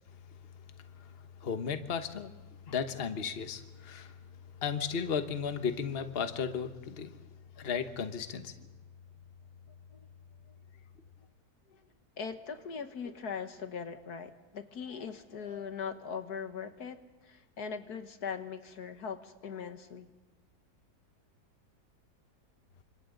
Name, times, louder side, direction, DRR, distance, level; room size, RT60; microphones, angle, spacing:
voice 1, 1.4-2.3 2.7-4.1 4.6-7.2 7.6-8.5, left 6 dB, 40° left, 8 dB, 1.3 m, -34 dB
voice 2, 12.2-17.0 17.2-20.1, left 6 dB, 70° left, 8 dB, 1.7 m, -40 dB
29.0 x 26.5 x 3.9 m, 1.2 s
omnidirectional pair, 1.7 m